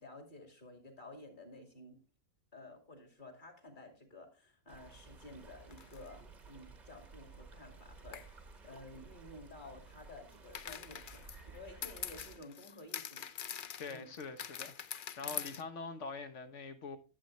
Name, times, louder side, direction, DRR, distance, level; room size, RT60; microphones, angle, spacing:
voice 1, 0.0-2.0 2.5-11.3 11.5-13.3 13.9-14.1 15.2-15.5, left 2 dB, 30° left, 2.2 m, -53 dB
Stream, 4.7-12.4, right 4 dB, 30° right, 1.0 m, -55 dB
sound 1, 5.7-6.1 8.1-8.3 10.5-15.6, left 8 dB, 75° left, 0.4 m, -44 dB
voice 2, 13.8-17.0, left 4 dB, 55° left, 1.2 m, -44 dB
11.5 x 7.7 x 3.1 m
omnidirectional pair, 1.6 m